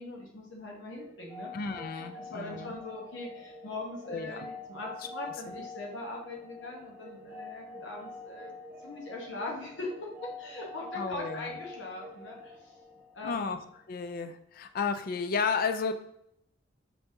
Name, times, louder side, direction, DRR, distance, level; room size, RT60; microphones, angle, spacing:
voice 1, 0.0-1.5 1.9-8.5 8.8-10.1 10.4-12.7 13.1-13.6, left 2 dB, 70° left, -1 dB, 1.1 m, -41 dB
sound 1, 0.9-13.7, left 3 dB, 10° right, 0.7 m, -46 dB
voice 2, 1.5-2.7 4.1-4.4 5.4-5.5 11.0-11.5 13.2-13.6 13.9-15.9, left 5 dB, 45° left, 10 dB, 0.3 m, -32 dB
4.0 x 2.8 x 3.5 m, 0.73 s
head